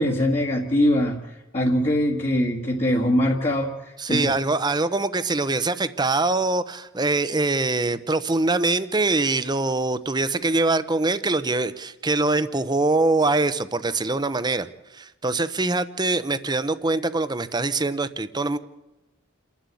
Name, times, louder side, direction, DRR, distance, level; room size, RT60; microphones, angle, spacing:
voice 1, 0.0-3.7 4.1-4.3, equal, 30° left, -3 dB, 1.9 m, -22 dB
voice 2, 4.0-14.7 14.9-18.6, right 2 dB, 20° right, 13 dB, 0.9 m, -23 dB
29.0 x 11.5 x 8.5 m, 1.0 s
head